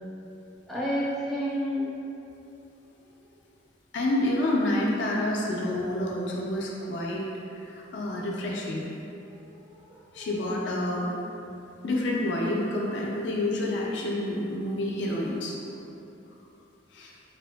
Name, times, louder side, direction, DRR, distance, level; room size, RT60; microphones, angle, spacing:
voice 1, 0.7-1.9 9.3-10.3, equal, ahead, -10 dB, 0.4 m, -31 dB
voice 2, 3.9-7.3 7.5-8.9 10.1-11.1 11.8-15.6 16.9-17.1, left 1 dB, 65° left, -2 dB, 0.3 m, -28 dB
2.7 x 2.5 x 2.2 m, 2.9 s
head